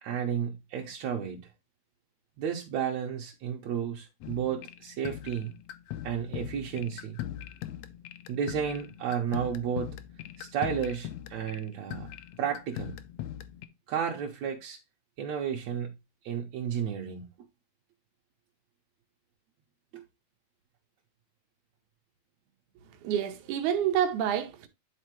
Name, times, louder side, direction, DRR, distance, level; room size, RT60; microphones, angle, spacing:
voice 1, 0.0-1.5 2.4-5.5 6.0-7.2 8.3-10.0 10.4-12.1 12.4-12.9 13.9-14.8 15.2-15.9 16.2-17.3 19.9-20.0, right 8 dB, 70° right, 2.1 m, -32 dB
sound 1, 4.2-13.7, left 12 dB, 75° left, 1.7 m, -41 dB
voice 2, 23.0-24.7, right 9 dB, 85° right, 2.4 m, -28 dB
10.0 x 4.2 x 3.0 m
omnidirectional pair, 3.4 m